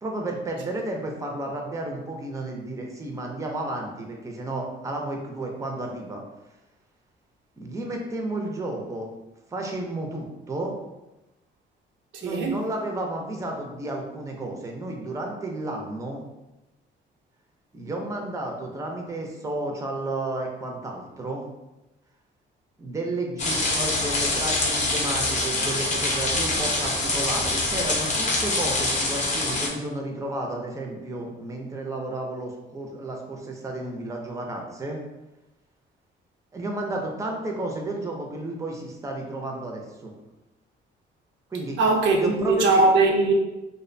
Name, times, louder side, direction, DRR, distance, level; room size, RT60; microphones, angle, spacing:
voice 1, 0.0-6.2 7.6-9.1 9.5-10.8 12.2-16.2 17.7-21.4 22.8-35.0 36.5-40.1 41.5-41.8 42.1-42.9, right 2 dB, 15° right, 0.4 m, -32 dB
voice 2, 12.1-12.6 41.8-43.3, right 3 dB, 70° right, 0.4 m, -20 dB
sound 1, 23.4-29.7, left 2 dB, 35° left, 0.6 m, -25 dB
2.4 x 2.1 x 2.5 m
cardioid pair, 90°, 20 cm